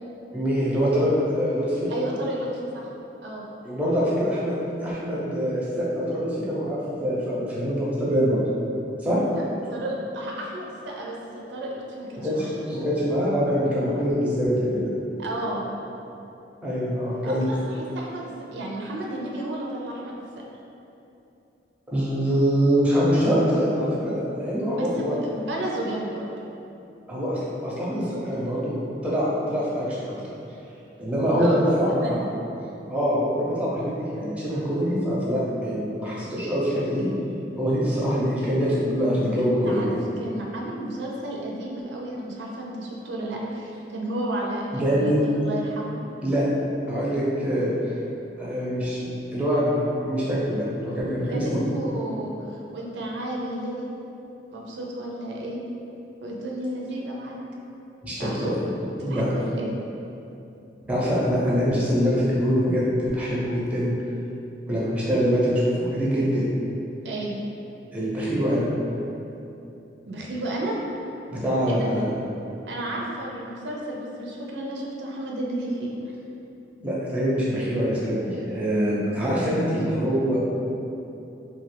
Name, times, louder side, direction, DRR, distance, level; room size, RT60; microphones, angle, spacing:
voice 1, 0.3-1.9 3.6-8.4 9.0-9.2 12.2-14.9 16.6-17.5 21.9-25.2 27.1-28.8 29.0-30.2 31.0-32.2 32.9-37.1 37.6-40.0 44.7-45.2 46.2-46.4 46.9-47.7 48.4-49.0 49.3-51.6 58.0-58.6 59.0-59.3 60.9-63.9 64.7-66.5 67.9-68.7 71.3-72.0 76.8-80.4, equal, 10° right, -8 dB, 0.6 m, -24 dB
voice 2, 1.9-2.9 3.2-3.4 9.3-9.4 9.7-12.6 15.2-15.6 17.2-20.2 24.7-26.3 31.4-31.6 32.0-32.3 39.4-46.0 51.3-53.9 54.5-55.6 56.2-57.4 58.1-58.5 59.0-59.7 67.0-67.3 70.1-70.8 71.7-71.9 72.7-75.9, right 1 dB, 80° right, -2 dB, 0.4 m, -32 dB
2.6 x 2.4 x 3.2 m, 2.8 s
head